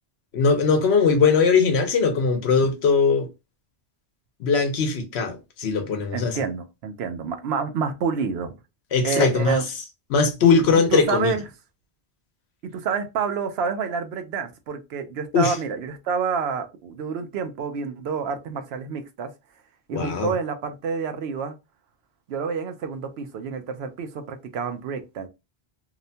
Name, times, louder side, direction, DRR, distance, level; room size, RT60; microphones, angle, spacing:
voice 1, 0.3-3.3 4.4-6.4 8.9-9.6 10.1-11.3 15.3-15.5 19.9-20.3, left 5 dB, 80° left, 1.0 m, -20 dB
voice 2, 6.1-8.5 9.0-9.7 10.5-10.6 10.9-11.4 12.6-19.3 19.9-21.6 22.3-25.3, right 6 dB, 75° right, 0.8 m, -28 dB
2.8 x 2.1 x 2.6 m
omnidirectional pair, 1.1 m